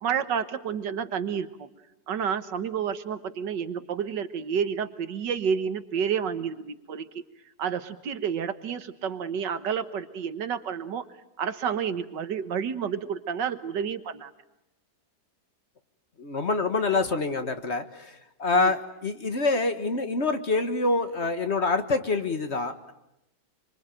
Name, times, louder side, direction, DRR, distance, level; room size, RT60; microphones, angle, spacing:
voice 1, 0.0-1.7 2.1-7.2 7.6-11.0 11.4-14.3 18.5-18.7, right 7 dB, 85° right, 11 dB, 1.9 m, -30 dB
voice 2, 16.2-22.9, left 3 dB, 40° left, 9 dB, 1.6 m, -26 dB
26.0 x 25.0 x 9.0 m, 0.88 s
omnidirectional pair, 1.8 m